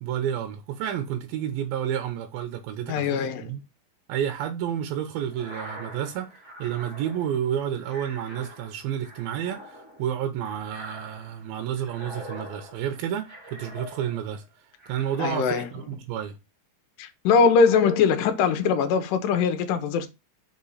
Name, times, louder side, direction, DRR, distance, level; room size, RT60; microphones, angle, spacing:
voice 1, 0.0-3.6 4.1-6.3 6.6-14.4 14.9-16.4, right 10 dB, 85° right, 2.7 m, -30 dB
voice 2, 2.9-3.5 15.2-15.7 17.0-20.1, left 6 dB, 75° left, 2.4 m, -21 dB
sound 1, 5.3-14.4 14.8-15.8, equal, 45° right, 0.3 m, -44 dB
5.5 x 4.3 x 4.1 m
omnidirectional pair, 4.2 m